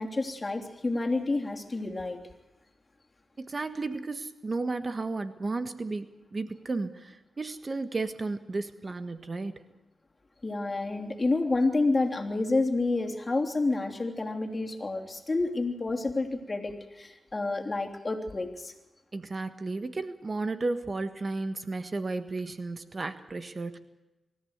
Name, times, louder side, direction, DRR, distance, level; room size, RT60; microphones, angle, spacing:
voice 1, 0.0-2.2 10.4-18.7, left 3 dB, 35° left, 4 dB, 3.1 m, -29 dB
voice 2, 3.4-6.1 6.3-9.6 19.1-23.8, right 3 dB, 40° right, 9 dB, 1.5 m, -33 dB
24.5 x 14.0 x 8.1 m, 1.0 s
cardioid pair, 55°, 0 cm